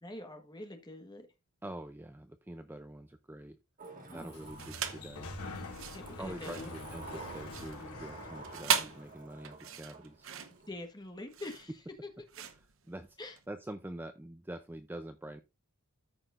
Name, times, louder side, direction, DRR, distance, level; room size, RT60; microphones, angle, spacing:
voice 1, 0.0-1.3 4.1-4.5 5.9-6.7 10.6-11.7 13.2-13.4, left 1 dB, 20° left, 1.4 m, -45 dB
voice 2, 1.6-3.6 4.1-5.3 6.2-10.3 12.9-13.2 13.5-15.4, right 1 dB, 10° right, 0.5 m, -45 dB
Sliding door, 3.8-5.3 6.0-10.7, right 4 dB, 40° right, 1.8 m, -51 dB
Sliding door 2, 4.0-9.2, left 2 dB, 90° left, 2.3 m, -46 dB
sound 1, 4.6-5.1 5.6-13.5, right 8 dB, 60° right, 0.9 m, -38 dB
13.5 x 5.9 x 2.5 m
head